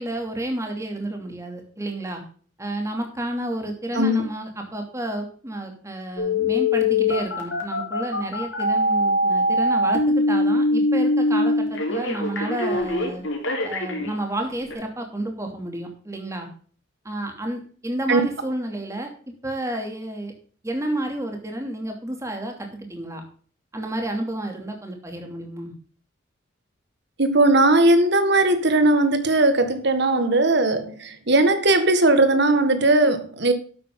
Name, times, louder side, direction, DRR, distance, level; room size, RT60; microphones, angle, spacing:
voice 1, 0.0-2.2 2.6-13.2 13.6-16.5 17.0-19.1 19.4-20.3 20.6-23.2 23.7-25.7, right 1 dB, 15° right, 2.7 m, -30 dB
Telephone, 6.2-14.1 14.7-14.8, left 2 dB, 65° left, 3.8 m, -22 dB
voice 2, 27.2-33.5, right 2 dB, 55° right, 1.8 m, -18 dB
12.0 x 8.6 x 3.9 m
head